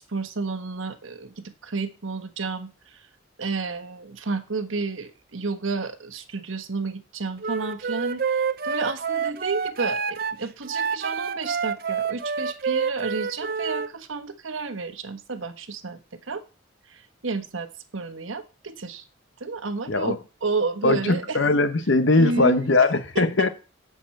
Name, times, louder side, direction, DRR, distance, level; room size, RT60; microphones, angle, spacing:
voice 1, 0.1-2.7 3.4-16.0 16.3-16.4 16.9-19.0 19.4-21.4 22.2-22.7 23.1-23.5, right 4 dB, 80° right, 1.1 m, -31 dB
Wind instrument woodwind instrument, 7.4-13.9, right 6 dB, 50° right, 0.5 m, -28 dB
voice 2, 20.8-23.5, left 2 dB, 65° left, 1.0 m, -20 dB
7.3 x 7.0 x 7.6 m
head